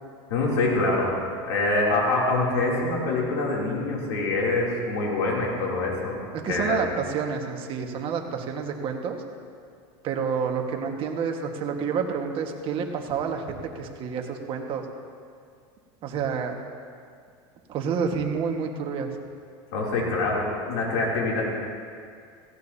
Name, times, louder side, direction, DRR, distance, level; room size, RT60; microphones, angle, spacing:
voice 1, 0.3-1.1 1.5-6.2 6.5-6.8 19.7-21.4, left 2 dB, 90° left, -3 dB, 3.0 m, -25 dB
voice 2, 6.3-9.2 10.0-14.8 16.0-16.6 17.7-19.1, right 6 dB, 45° right, 2 dB, 1.6 m, -29 dB
17.0 x 16.0 x 2.8 m, 2.2 s
supercardioid pair, 130°, 13 cm